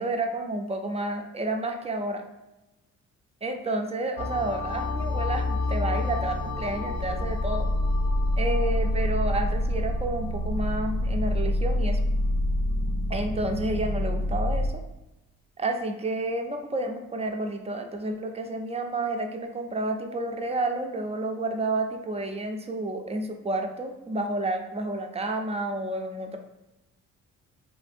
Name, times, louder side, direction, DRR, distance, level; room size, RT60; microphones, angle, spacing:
voice 1, 0.0-2.2 3.4-7.7 8.4-12.0 13.1-14.7 15.6-26.4, right 2 dB, 20° right, 4 dB, 0.4 m, -30 dB
sound 1, 4.2-14.7, left 1 dB, 65° left, 0.6 m, -27 dB
3.1 x 2.6 x 2.5 m, 0.98 s
cardioid pair, 90°, 30 cm